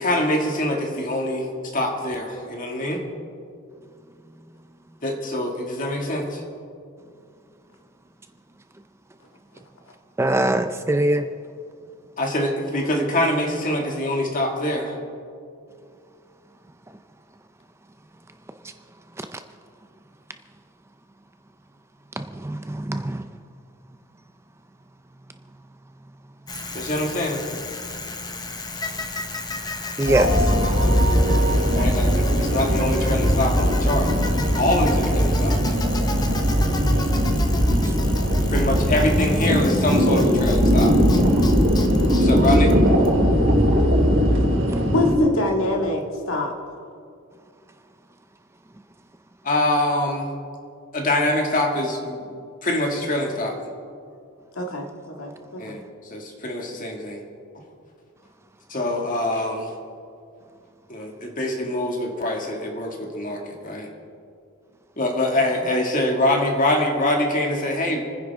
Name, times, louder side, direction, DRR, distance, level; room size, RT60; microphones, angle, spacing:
voice 1, 0.0-3.0 5.0-6.4 12.2-15.0 26.7-27.4 31.7-34.1 34.6-35.8 38.5-41.0 42.2-42.8 49.4-50.3 50.9-53.6 55.6-55.8 56.1-57.2 58.7-59.7 60.9-63.9 65.0-68.0, left 1 dB, 40° left, 1 dB, 2.1 m, -24 dB
voice 2, 10.2-11.3 22.2-23.2 30.0-30.3, right 1 dB, 10° right, 8 dB, 0.4 m, -22 dB
Bicycle, 26.5-43.5, left 3 dB, 20° left, 0.9 m, -34 dB
sound 1, 30.1-45.2, equal, 65° right, 3.3 m, -19 dB
voice 3, 44.9-46.5 54.6-55.8, left 2 dB, 70° left, 1 dB, 2.0 m, -25 dB
29.5 x 10.0 x 3.6 m, 2.4 s
head